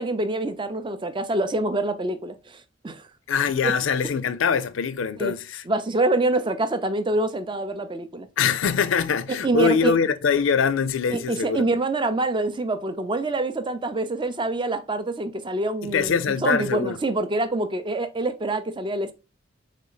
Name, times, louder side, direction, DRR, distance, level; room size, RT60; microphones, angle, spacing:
voice 1, 0.0-3.1 3.6-3.7 5.2-5.3 5.7-8.3 9.3-9.9 11.1-19.1, right 2 dB, 25° right, 0.5 m, -26 dB
voice 2, 3.3-5.6 8.4-11.6 15.8-17.0, left 6 dB, 85° left, 0.5 m, -23 dB
4.1 x 3.2 x 3.9 m
head